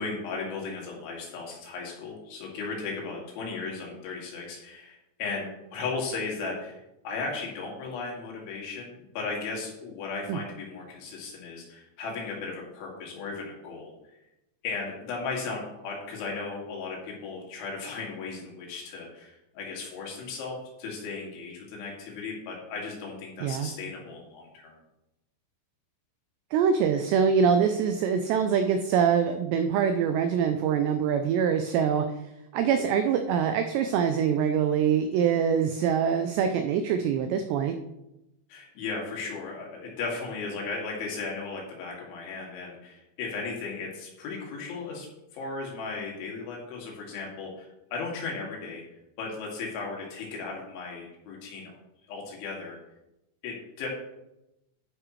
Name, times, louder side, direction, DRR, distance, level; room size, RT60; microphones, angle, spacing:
voice 1, 0.0-13.9 14.6-24.8 38.5-45.1 45.3-48.8 49.2-51.7 52.1-52.8 53.4-53.9, left 4 dB, 75° left, -2 dB, 4.6 m, -36 dB
voice 2, 26.5-32.1 32.5-37.7, right 7 dB, 85° right, 7 dB, 2.4 m, -24 dB
11.5 x 9.8 x 3.2 m, 0.91 s
omnidirectional pair, 5.6 m